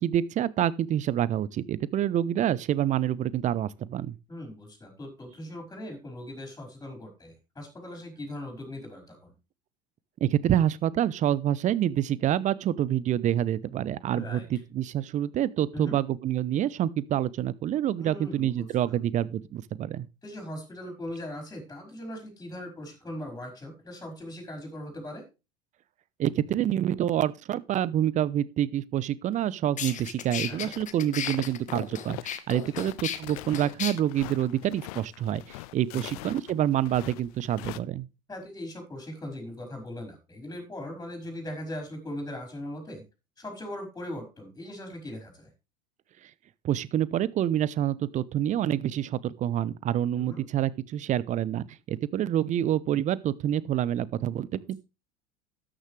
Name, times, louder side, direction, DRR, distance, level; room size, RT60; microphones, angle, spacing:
voice 1, 0.0-4.2 10.2-20.1 26.2-38.1 46.6-54.8, right 11 dB, 35° right, 0.8 m, -27 dB
voice 2, 4.3-9.3 14.1-14.5 15.7-16.0 18.0-19.0 20.2-25.2 30.5-30.7 32.7-32.8 35.9-36.2 38.3-43.0 43.4-45.5 50.1-50.4, left 1 dB, 15° left, 5.1 m, -40 dB
sound 1, 29.3-29.4 29.8-33.9, left 9 dB, 35° left, 1.7 m, -35 dB
sound 2, 30.4-30.8 31.1-37.8, left 19 dB, 60° left, 0.7 m, -43 dB
13.0 x 9.9 x 3.3 m
hypercardioid pair, 80°, 21 cm